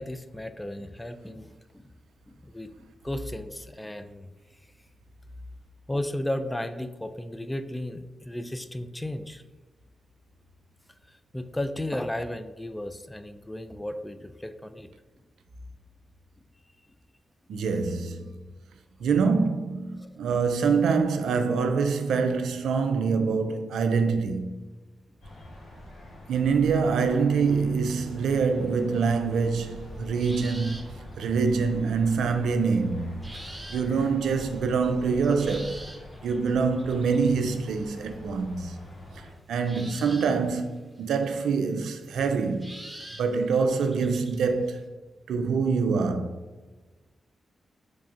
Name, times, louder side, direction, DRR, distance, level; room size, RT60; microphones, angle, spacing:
voice 1, 0.0-1.5 1.7-1.9 2.3-2.7 3.0-4.3 5.9-9.4 11.1-14.9 20.0-20.1, left 1 dB, 15° left, 0.3 m, -34 dB
voice 2, 17.5-18.4 19.0-24.6 26.3-33.2 33.7-35.9 36.2-38.8 39.2-42.7 43.2-44.9 45.3-46.4, right 5 dB, 80° right, 0.3 m, -25 dB
sound 1, 25.2-39.3, left 1 dB, 80° left, 1.2 m, -44 dB
sound 2, 28.1-28.2 30.2-31.6 33.2-34.0 34.4-38.1 39.6-41.0 41.2-41.4 41.9-44.8, right 1 dB, 10° right, 0.9 m, -46 dB
3.5 x 3.2 x 2.6 m
supercardioid pair, 45°, 0 cm